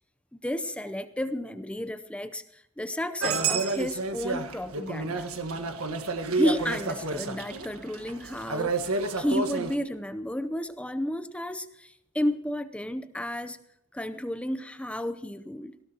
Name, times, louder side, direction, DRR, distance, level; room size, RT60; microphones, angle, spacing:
voice 1, 0.3-5.3 6.3-13.6 13.9-15.7, left 1 dB, 5° left, 11 dB, 0.7 m, -32 dB
sound 1, 3.2-9.7, right 3 dB, 75° right, 1.5 m, -30 dB
19.0 x 16.5 x 2.9 m, 0.75 s
head